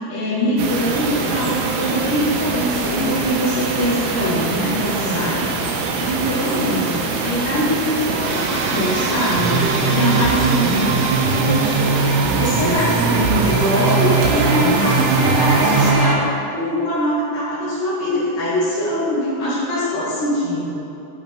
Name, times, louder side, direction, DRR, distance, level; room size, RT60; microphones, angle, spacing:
voice 1, 0.0-5.7 6.0-11.0 11.3-11.8 12.2-16.2 16.5-20.8, equal, 90° left, -12 dB, 4.6 m, -22 dB
sound 1, 0.6-15.9, right 4 dB, 90° right, 3.0 m, -24 dB
sound 2, 8.2-16.1, right 4 dB, 70° right, 2.2 m, -20 dB
12.0 x 4.3 x 5.3 m, 2.8 s
omnidirectional pair, 4.7 m